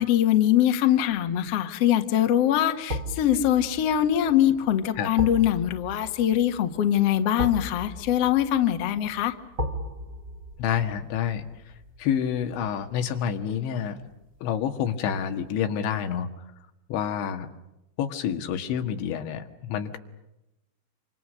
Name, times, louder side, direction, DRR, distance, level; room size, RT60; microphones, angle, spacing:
voice 1, 0.0-9.3, left 11 dB, 55° left, 6 dB, 1.9 m, -23 dB
sound 1, 1.4-1.5 2.9-13.9 14.2-14.4, left 1 dB, 30° right, 2.3 m, -37 dB
voice 2, 10.6-11.7 12.0-14.0 14.4-16.3 16.9-17.5 18.0-20.0, left 8 dB, 85° left, 6 dB, 4.1 m, -28 dB
28.0 x 27.0 x 6.5 m, 0.93 s
omnidirectional pair, 5.1 m